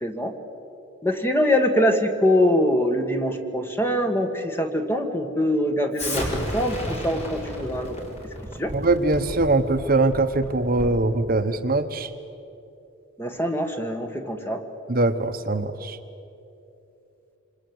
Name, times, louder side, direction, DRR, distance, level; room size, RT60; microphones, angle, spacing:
voice 1, 0.0-0.3 1.0-8.0 8.6-8.7 13.2-14.6, left 1 dB, 10° left, 4 dB, 1.9 m, -23 dB
Explosion, 5.9-11.1, left 1 dB, 35° left, 4.8 m, -33 dB
voice 2, 8.7-12.1 14.9-16.0, right 2 dB, 45° right, 8 dB, 1.0 m, -22 dB
27.0 x 26.0 x 8.0 m, 2.9 s
head